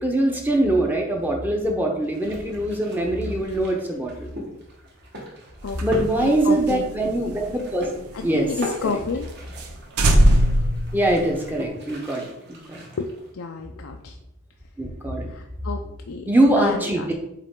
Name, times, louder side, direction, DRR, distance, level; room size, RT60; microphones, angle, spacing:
voice 1, 0.0-4.3 5.8-7.9 8.2-8.5 8.8-9.0 10.9-12.8 14.8-15.3 16.3-17.1, right 1 dB, 10° right, 1 dB, 0.8 m, -23 dB
sound 1, 2.0-13.3, equal, 50° right, 1.4 m, -39 dB
sound 2, 5.6-8.5 8.8-8.9 9.2-9.3 9.6-9.7 10.0-11.7, right 1 dB, 90° right, 0.8 m, -21 dB
voice 2, 6.2-7.0 8.1-9.3 13.0-13.1 13.3-14.2 15.3-16.3 16.6-17.1, left 4 dB, 65° left, 3 dB, 0.4 m, -30 dB
8.1 x 3.2 x 3.7 m, 0.84 s
head